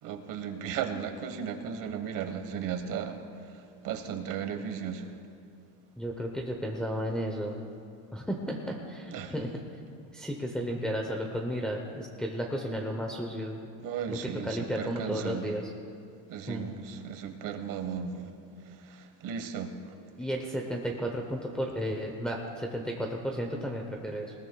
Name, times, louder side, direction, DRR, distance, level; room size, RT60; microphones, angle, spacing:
voice 1, 0.0-3.2 3.5-5.1 9.1-9.3 13.8-15.5 16.3-18.3 18.8-19.8, right 7 dB, 50° right, 7 dB, 1.3 m, -35 dB
voice 2, 6.0-7.5 8.1-9.5 10.1-13.6 14.1-14.2 14.4-15.7 16.5-16.7 20.2-24.3, equal, ahead, -1 dB, 0.7 m, -33 dB
20.5 x 19.5 x 2.3 m, 2.4 s
cardioid pair, 165°, 40 cm